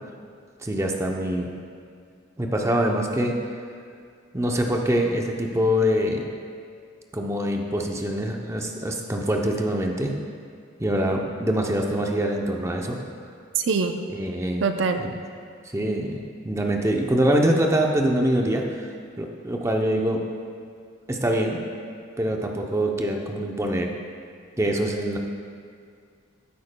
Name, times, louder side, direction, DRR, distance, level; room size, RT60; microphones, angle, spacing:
voice 1, 0.6-1.5 2.4-3.4 4.3-6.3 7.1-10.1 10.8-13.0 14.1-14.7 15.0-15.1 15.7-18.9 19.2-20.2 21.1-21.6 22.2-23.9 24.6-25.2, equal, 15° right, 1 dB, 0.6 m, -24 dB
voice 2, 13.6-13.9 14.6-15.0, right 5 dB, 65° right, 6 dB, 0.5 m, -23 dB
14.5 x 8.4 x 2.2 m, 2.2 s
head